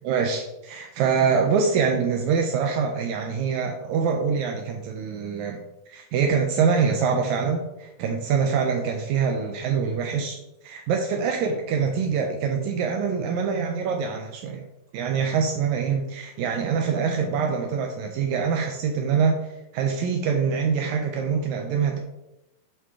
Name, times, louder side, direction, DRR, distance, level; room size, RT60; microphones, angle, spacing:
voice 1, 0.0-5.6 5.9-10.4 10.6-14.7 14.9-22.0, right 6 dB, 85° right, 3 dB, 1.7 m, -24 dB
8.3 x 5.0 x 3.7 m, 0.91 s
omnidirectional pair, 4.1 m